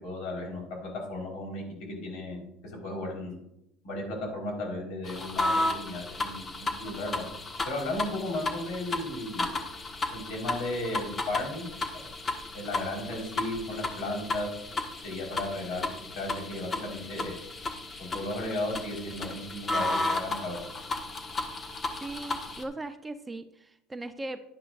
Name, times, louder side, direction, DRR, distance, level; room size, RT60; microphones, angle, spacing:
voice 1, 0.0-3.4 3.8-7.2 7.6-9.5 10.1-11.7 11.9-12.1 12.5-14.5 15.0-15.9 16.2-17.4 18.0-20.6, left 2 dB, 65° left, 0 dB, 4.2 m, -35 dB
sound 1, 5.0-22.6, left 2 dB, 30° left, 1.4 m, -34 dB
voice 2, 22.0-24.4, right 2 dB, 15° right, 9 dB, 0.6 m, -38 dB
11.0 x 10.5 x 2.5 m, 0.82 s
supercardioid pair, 90°, 0 cm